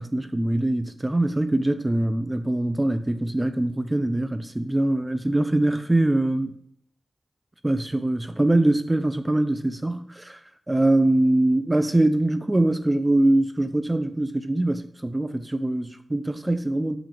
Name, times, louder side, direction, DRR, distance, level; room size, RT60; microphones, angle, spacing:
voice 1, 0.0-6.6 7.6-10.4 10.7-17.0, right 1 dB, 20° right, 0.5 m, -23 dB
7.4 x 7.0 x 3.4 m
wide cardioid pair, 65°, 0 cm